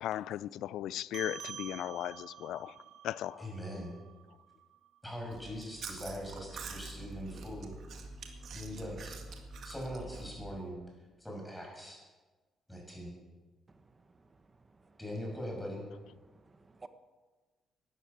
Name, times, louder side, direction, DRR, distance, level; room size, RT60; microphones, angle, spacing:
voice 1, 0.0-2.8 3.0-3.5, left 12 dB, 85° left, 0.3 m, -37 dB
sound 1, 1.1-5.9, right 9 dB, 80° right, 1.2 m, -49 dB
voice 2, 3.4-4.0 5.0-7.8 8.5-9.2 9.6-10.8 11.2-12.0 12.7-13.2 15.0-15.8, equal, 5° left, 6.4 m, -41 dB
Chewing mastication, 5.3-10.6, right 3 dB, 65° right, 2.0 m, -46 dB
voice 3, 13.7-15.0 16.1-16.9, right 3 dB, 30° right, 1.2 m, -57 dB
12.5 x 11.0 x 8.6 m
cardioid pair, 90°, 0 cm